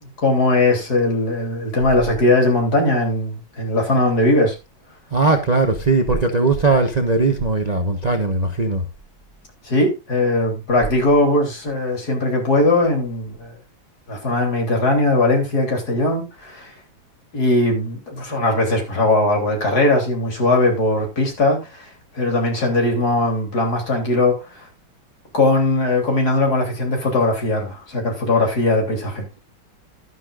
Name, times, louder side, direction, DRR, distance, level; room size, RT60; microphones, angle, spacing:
voice 1, 0.2-4.6 9.6-13.5 14.1-16.7 17.3-24.6 25.3-29.3, left 2 dB, 50° left, 3.9 m, -19 dB
voice 2, 5.1-8.9, right 3 dB, 25° right, 1.0 m, -19 dB
12.0 x 11.0 x 2.5 m
omnidirectional pair, 2.2 m